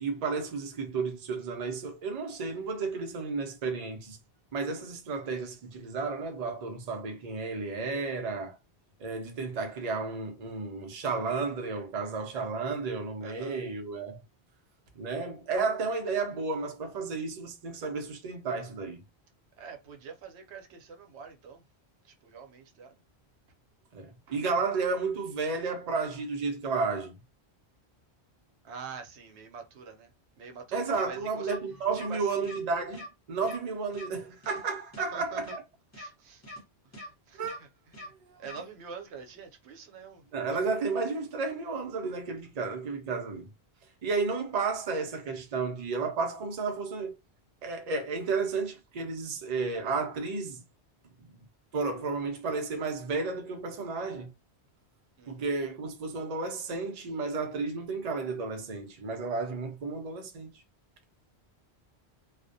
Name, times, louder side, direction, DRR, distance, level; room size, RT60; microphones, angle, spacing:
voice 1, 0.0-4.2 4.5-8.6 9.0-14.2 15.0-19.0 23.9-27.2 30.7-35.6 37.3-37.6 38.3-38.4 40.3-43.5 44.0-47.2 47.6-50.6 51.2-51.4 51.7-54.3 55.3-60.5, right 4 dB, 50° right, 0.5 m, -32 dB
voice 2, 13.2-13.6 15.9-16.0 19.6-21.6 22.0-23.0 24.3-24.4 28.6-30.1 30.4-31.5 31.9-32.5 35.1-35.4 35.9-36.6 36.9-37.7 38.0-40.5 55.2-55.5, right 5 dB, 80° right, 0.9 m, -46 dB
sound 1, 30.9-31.1 31.4-31.6 31.9-32.1 32.4-32.6 32.9-33.1 33.4-33.6 33.9-34.1 34.4-34.6 34.9-35.1 35.4-35.6 35.9-36.1 36.4-36.6 36.9-37.1 37.4-37.6 37.9-38.1 38.4-38.6, left 1 dB, 15° left, 0.7 m, -43 dB
2.3 x 2.1 x 2.6 m
omnidirectional pair, 1.1 m